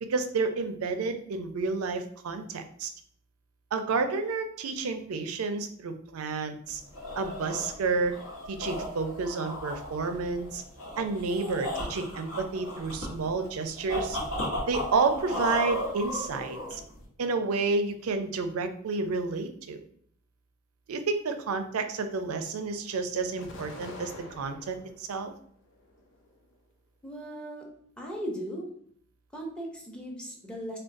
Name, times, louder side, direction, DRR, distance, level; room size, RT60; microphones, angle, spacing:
voice 1, 0.0-2.9 3.7-6.8 7.1-8.2 8.5-10.6 11.0-14.2 14.7-16.8 17.2-19.8 20.9-25.3, right 4 dB, 90° right, 8 dB, 0.4 m, -30 dB
sound 1, 6.7-17.0, left 1 dB, 80° left, 0.9 m, -35 dB
Explosion, 23.4-25.0 25.6-26.5, left 2 dB, 60° left, 0.5 m, -46 dB
voice 2, 27.0-27.7 28.0-28.7 29.3-30.8, equal, 5° left, -1 dB, 0.6 m, -37 dB
3.7 x 2.2 x 2.5 m, 0.63 s
head